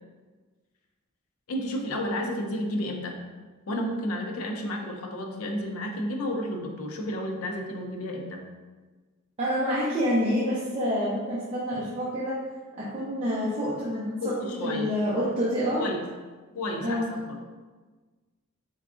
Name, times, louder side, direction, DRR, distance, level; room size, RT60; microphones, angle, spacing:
voice 1, 1.5-3.2 3.7-8.5 14.2-14.9 15.8-16.1 16.5-17.4, left 1 dB, 75° left, 2 dB, 0.5 m, -31 dB
voice 2, 9.4-12.3 12.8-15.8 16.8-17.1, equal, 30° right, -8 dB, 0.6 m, -27 dB
3.8 x 3.4 x 2.5 m, 1.3 s
head